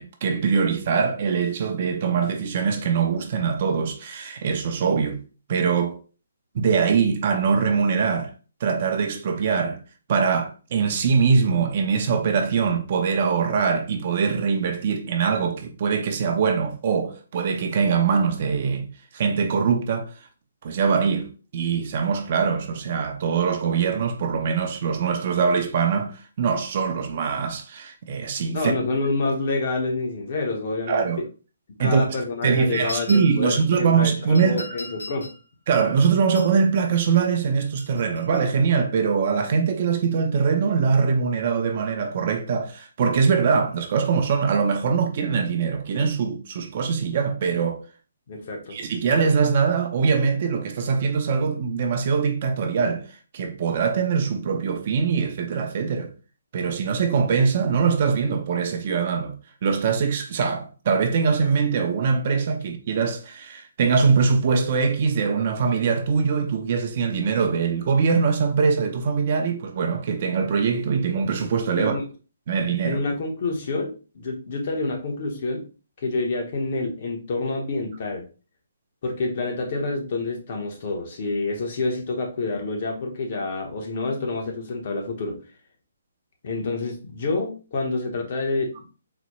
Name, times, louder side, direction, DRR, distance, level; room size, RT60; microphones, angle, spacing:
voice 1, 0.0-5.2 5.5-6.0 6.5-8.3 8.6-9.8 10.1-18.9 19.1-20.1 20.6-28.7 30.9-31.2 31.8-32.0 32.4-34.6 35.7-47.8 48.7-53.1 53.3-56.1 56.5-59.3 59.6-72.0 72.5-73.0, right 5 dB, 40° right, 0.5 m, -22 dB
voice 2, 28.5-31.3 31.8-35.3 48.3-48.8 71.7-72.0 72.8-75.7 76.0-78.2 79.0-85.4 86.4-88.8, left 3 dB, 45° left, 0.9 m, -28 dB
sound 1, 32.7-33.6 34.3-35.4 36.0-36.5 37.6-38.5, left 2 dB, 90° left, 1.6 m, -39 dB
4.0 x 2.1 x 3.0 m
hypercardioid pair, 160°, 0 cm